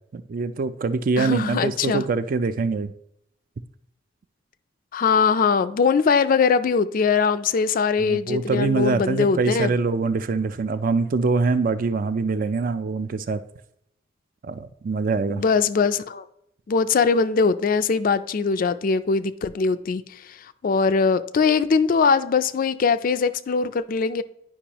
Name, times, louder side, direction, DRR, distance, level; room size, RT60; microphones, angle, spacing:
voice 1, 0.1-2.9 8.0-13.4 14.4-15.4, right 4 dB, 45° right, 0.4 m, -24 dB
voice 2, 1.2-2.0 4.9-9.7 15.3-16.3 16.7-24.2, left 5 dB, 45° left, 0.3 m, -21 dB
10.0 x 5.3 x 2.9 m
head